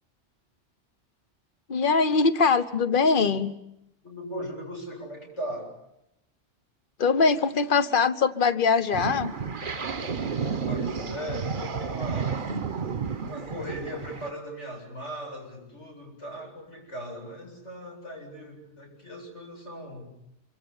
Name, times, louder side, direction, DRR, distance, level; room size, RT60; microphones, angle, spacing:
voice 1, 1.7-3.5 7.0-9.3, left 4 dB, 45° left, 12 dB, 1.4 m, -22 dB
voice 2, 4.0-5.7 10.6-12.4 13.2-20.1, equal, 80° left, 1 dB, 8.4 m, -38 dB
sound 1, 8.9-14.3, right 6 dB, 45° right, 1.3 m, -31 dB
26.0 x 25.0 x 7.3 m, 0.84 s
omnidirectional pair, 1.2 m